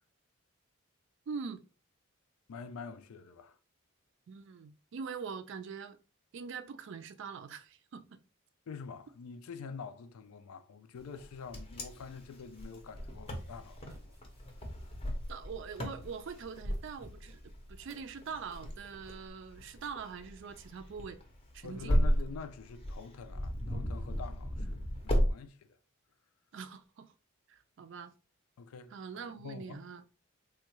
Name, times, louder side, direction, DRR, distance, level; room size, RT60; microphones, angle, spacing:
voice 1, 1.3-1.6 4.3-6.0 6.3-8.2 15.3-17.4 17.7-21.2 21.5-22.0 22.3-22.4 26.5-27.1 27.5-28.1 28.9-30.0, right 5 dB, 60° right, 0.3 m, -43 dB
voice 2, 2.5-3.6 8.7-13.8 14.1-14.2 21.6-25.8 28.6-28.9 29.4-29.8, left 5 dB, 85° left, 0.4 m, -46 dB
Wind, 11.1-25.3, equal, 25° left, 0.6 m, -35 dB
sound 1, 12.5-19.3, equal, 15° right, 0.6 m, -48 dB
3.5 x 2.2 x 2.9 m
head